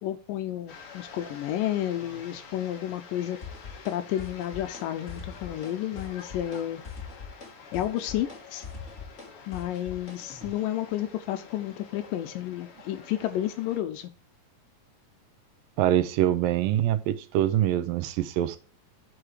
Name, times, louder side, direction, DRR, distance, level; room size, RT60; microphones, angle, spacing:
voice 1, 0.0-3.4 3.9-6.8 7.7-8.7 9.5-14.1, left 12 dB, 80° left, 2.3 m, -31 dB
sound 1, 0.7-13.8, left 5 dB, 50° left, 2.0 m, -48 dB
sound 2, 3.4-3.9 4.2-4.8 5.1-5.7 6.0-6.6 6.8-10.5, left 5 dB, 25° left, 2.2 m, -41 dB
voice 2, 15.8-18.6, right 12 dB, 85° right, 2.4 m, -24 dB
10.0 x 4.8 x 4.5 m
omnidirectional pair, 4.0 m